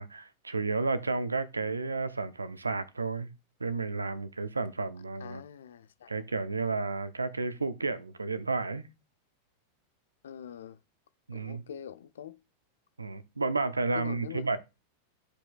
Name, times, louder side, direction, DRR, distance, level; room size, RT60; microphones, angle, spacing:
voice 1, 0.0-3.3 3.6-5.4 6.1-8.9 11.3-11.6 13.0-14.6, right 3 dB, 80° right, 0.7 m, -32 dB
voice 2, 5.2-6.1 10.2-10.8 11.3-12.4 13.9-14.4, left 9 dB, 65° left, 0.5 m, -43 dB
13.0 x 5.0 x 2.3 m
figure-of-eight pair, 90°, 0 cm